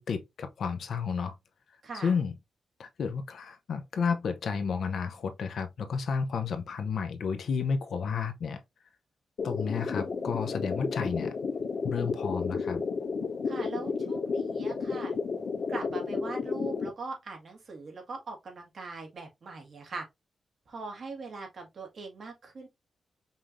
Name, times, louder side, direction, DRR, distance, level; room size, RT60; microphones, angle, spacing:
voice 1, 0.0-1.3 1.9-2.4 2.8-8.6 9.4-11.3 11.8-12.8, left 6 dB, 70° left, 0.7 m, -31 dB
voice 2, 1.8-2.2 13.4-15.1 15.7-20.0 20.7-22.7, right 3 dB, 50° right, 1.7 m, -41 dB
sound 1, 9.4-16.9, left 5 dB, 85° left, 1.4 m, -32 dB
5.5 x 3.2 x 2.6 m
wide cardioid pair, 180°, 0 cm